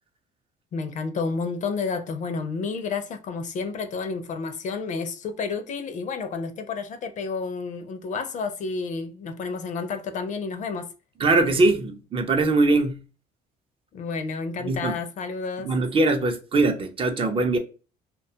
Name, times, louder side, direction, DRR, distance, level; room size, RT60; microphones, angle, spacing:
voice 1, 0.7-10.9 13.9-15.7, left 4 dB, 50° left, 0.4 m, -30 dB
voice 2, 11.2-13.0 14.6-14.9 15.6-17.6, right 2 dB, 35° right, 0.4 m, -21 dB
2.4 x 2.2 x 2.7 m
cardioid pair, 110°, 17 cm